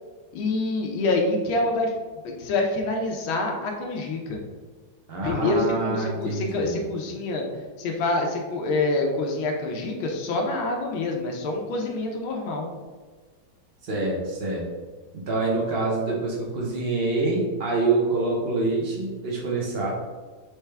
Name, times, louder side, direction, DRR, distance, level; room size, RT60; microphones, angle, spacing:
voice 1, 0.3-1.9 2.4-4.4 5.2-7.5 7.8-12.7, left 2 dB, 80° left, 1 dB, 1.5 m, -26 dB
voice 2, 5.1-6.8 13.8-14.6 15.1-19.9, right 3 dB, 60° right, -3 dB, 0.6 m, -26 dB
4.6 x 3.2 x 3.3 m, 1.4 s
omnidirectional pair, 2.3 m